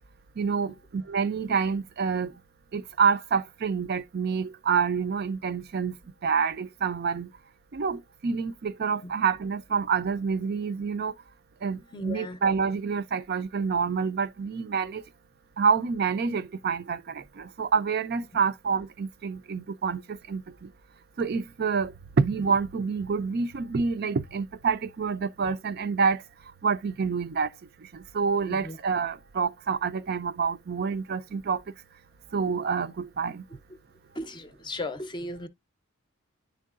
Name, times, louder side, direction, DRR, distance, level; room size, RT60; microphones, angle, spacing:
voice 1, 0.4-2.3 2.7-6.0 6.2-7.3 7.7-11.1 11.6-15.0 15.6-20.7 21.2-26.2 26.6-27.5 27.8-31.6 32.3-33.4, right 5 dB, 50° right, 0.4 m, -27 dB
voice 2, 11.9-12.4 28.5-28.8 34.2-35.5, left 2 dB, 20° left, 0.5 m, -36 dB
10.5 x 3.7 x 2.4 m
head